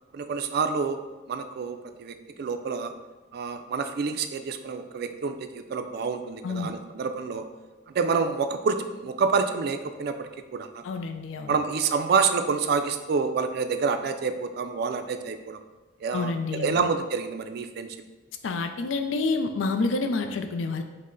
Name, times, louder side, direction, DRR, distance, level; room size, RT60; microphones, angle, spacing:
voice 1, 0.1-1.0 1.3-2.9 3.3-7.5 7.9-10.8 11.5-15.6 16.0-18.0, right 5 dB, 55° right, 8 dB, 0.3 m, -28 dB
voice 2, 10.8-11.5 16.1-16.8 18.4-20.8, left 3 dB, 85° left, 6 dB, 0.4 m, -28 dB
5.2 x 2.1 x 3.8 m, 1.2 s
head